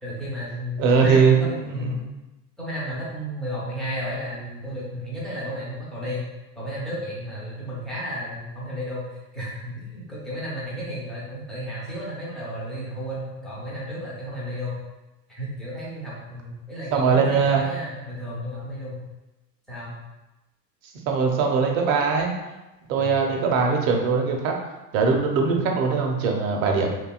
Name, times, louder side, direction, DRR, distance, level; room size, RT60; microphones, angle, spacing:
voice 1, 0.0-2.0 2.6-6.3 6.6-14.8 15.3-19.1 19.7-20.0 23.0-23.2, equal, ahead, -8 dB, 0.4 m, -33 dB
voice 2, 0.8-2.0 16.9-17.6 21.1-22.3 22.9-24.5 24.9-26.9, right 5 dB, 50° right, 2 dB, 0.6 m, -21 dB
2.7 x 2.2 x 2.3 m, 1.0 s
hypercardioid pair, 85°, 50 cm